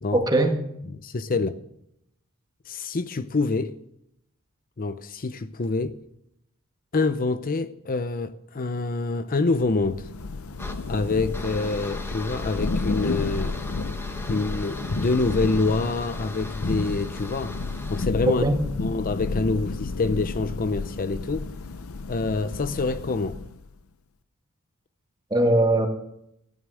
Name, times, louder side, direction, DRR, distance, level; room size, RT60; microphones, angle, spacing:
voice 1, 0.1-0.6 18.3-18.6 25.3-25.9, right 1 dB, 20° right, 1.8 m, -20 dB
voice 2, 1.0-1.6 2.7-3.7 4.8-6.0 6.9-10.1 10.9-13.6 14.2-17.5 17.9-18.4 18.8-21.5 22.1-23.4, left 3 dB, 40° left, 0.6 m, -26 dB
Thunder / Rain, 9.6-23.7, left 3 dB, 80° left, 0.7 m, -32 dB
sound 1, 10.6-18.1, left 1 dB, 10° left, 1.2 m, -40 dB
14.5 x 11.0 x 6.3 m
head